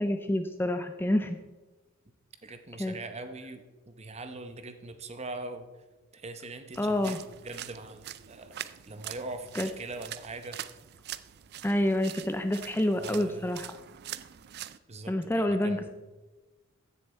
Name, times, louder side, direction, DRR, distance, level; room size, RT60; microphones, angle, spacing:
voice 1, 0.0-1.4 2.8-2.9 6.8-7.2 9.5-9.7 11.6-13.8 15.1-15.9, left 1 dB, 10° left, 7 dB, 0.4 m, -28 dB
voice 2, 2.4-5.7 6.1-7.2 7.4-8.6 8.8-10.6 13.0-13.6 14.9-15.9, right 2 dB, 30° right, 9 dB, 0.9 m, -42 dB
sound 1, 6.7-14.8, right 12 dB, 50° right, 0.4 m, -44 dB
15.0 x 6.9 x 4.3 m, 1.2 s
head